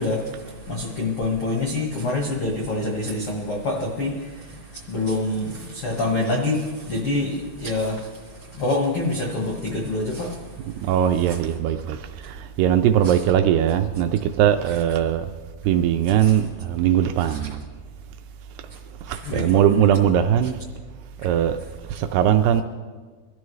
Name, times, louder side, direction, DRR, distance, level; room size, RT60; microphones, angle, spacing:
voice 1, 0.0-10.9 13.0-13.1 16.2-16.4 17.3-17.4 18.7-18.8 19.1-19.6, left 2 dB, 70° left, 1.3 m, -27 dB
voice 2, 10.8-15.3 15.7-17.6 19.0-20.6 21.2-21.6 21.9-22.6, right 10 dB, 80° right, 2.4 m, -20 dB
23.5 x 13.0 x 3.2 m
omnidirectional pair, 5.0 m